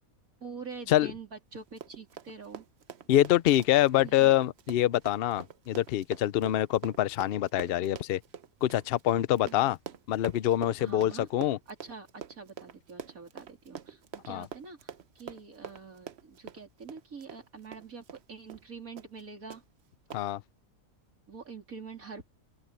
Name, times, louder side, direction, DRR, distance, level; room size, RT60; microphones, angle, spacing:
voice 1, 0.4-2.7 4.0-4.3 9.4-9.8 10.8-11.3 11.7-19.6 21.3-22.4, right 5 dB, 75° right, 3.9 m, -45 dB
Run, 1.6-18.2 18.5-18.7 19.0-19.2 19.5-19.6 20.1-20.2, right 8 dB, 55° right, 1.0 m, -45 dB
voice 2, 3.1-8.2 8.6-9.8 10.1-11.6 14.3-14.4 20.1-20.4, left 13 dB, 60° left, 0.6 m, -25 dB
open air
omnidirectional pair, 1.5 m